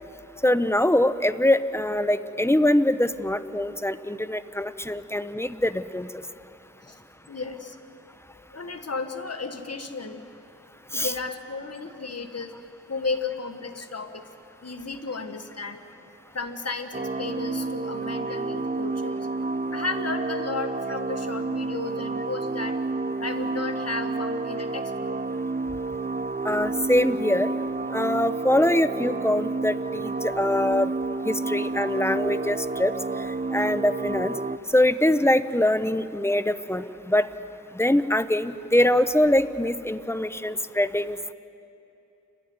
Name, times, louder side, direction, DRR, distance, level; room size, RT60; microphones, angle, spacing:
voice 1, 0.4-6.1 10.9-11.1 26.4-27.5 27.9-30.9 31.2-32.9 33.5-34.4 34.7-37.3 37.7-41.3, left 1 dB, 10° left, 13 dB, 0.9 m, -23 dB
voice 2, 7.3-7.8 8.5-10.2 10.9-12.5 12.9-14.2 14.6-15.8 16.3-19.3 19.7-22.8 23.2-25.2, left 4 dB, 50° left, 6 dB, 1.7 m, -33 dB
sound 1, 16.9-34.6, right 3 dB, 25° right, 0.6 m, -30 dB
29.0 x 12.5 x 9.7 m, 2.9 s
cardioid pair, 45°, 32 cm